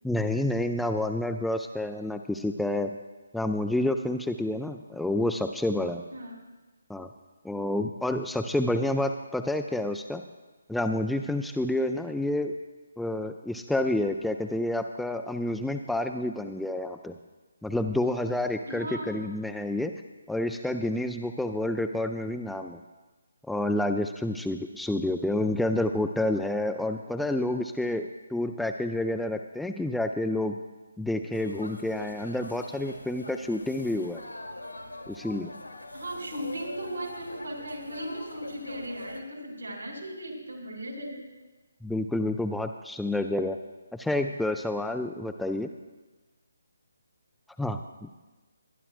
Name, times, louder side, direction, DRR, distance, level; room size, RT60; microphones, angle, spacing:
voice 1, 0.0-3.0 3.3-6.0 6.9-7.1 7.4-10.2 10.7-12.5 13.0-17.1 17.6-19.9 20.3-22.8 23.5-30.6 31.0-34.2 35.1-35.5 41.8-43.6 43.9-45.7 47.6-48.1, left 1 dB, ahead, 5 dB, 0.3 m, -29 dB
voice 2, 18.7-19.3 35.9-41.2, right 1 dB, 70° right, 0 dB, 3.4 m, -37 dB
sound 1, 31.3-39.2, left 2 dB, 85° left, 2.0 m, -43 dB
21.0 x 10.5 x 2.5 m, 1.2 s
figure-of-eight pair, 145°, 0 cm